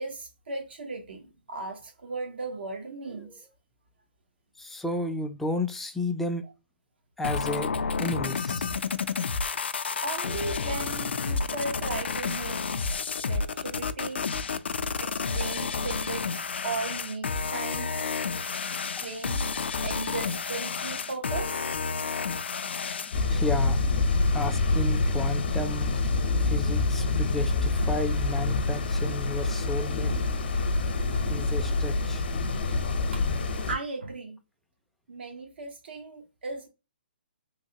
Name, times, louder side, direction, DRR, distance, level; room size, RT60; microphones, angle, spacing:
voice 1, 0.0-3.4 10.0-12.7 13.2-14.3 15.0-17.9 18.7-19.5 19.8-21.7 30.9-31.5 33.1-34.4 35.1-36.7, right 3 dB, 75° right, 0.7 m, -37 dB
voice 2, 4.6-6.4 7.2-7.7 8.0-8.7 23.0-23.8 24.3-25.9 26.4-30.2 31.3-32.2, left 1 dB, 5° left, 0.3 m, -32 dB
sound 1, 7.2-23.2, left 5 dB, 85° left, 0.3 m, -30 dB
sound 2, 23.1-33.7, left 3 dB, 65° left, 0.7 m, -26 dB
3.0 x 2.8 x 2.7 m
hypercardioid pair, 150°, 6 cm